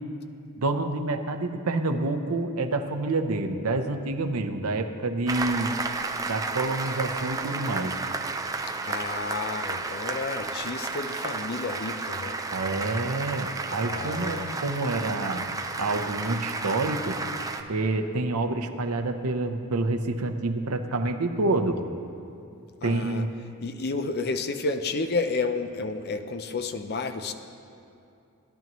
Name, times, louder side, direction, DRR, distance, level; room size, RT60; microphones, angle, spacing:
voice 1, 0.6-5.7 6.2-7.9 12.5-15.5 15.8-17.2 17.7-21.8 22.8-23.3, right 2 dB, 80° right, 7 dB, 0.7 m, -28 dB
Applause, 5.3-17.6, right 3 dB, 15° right, 0.4 m, -32 dB
voice 2, 8.8-12.4 13.8-14.5 22.8-23.2 23.6-27.3, left 3 dB, 45° left, 8 dB, 0.5 m, -31 dB
17.0 x 11.0 x 3.1 m, 2.6 s
head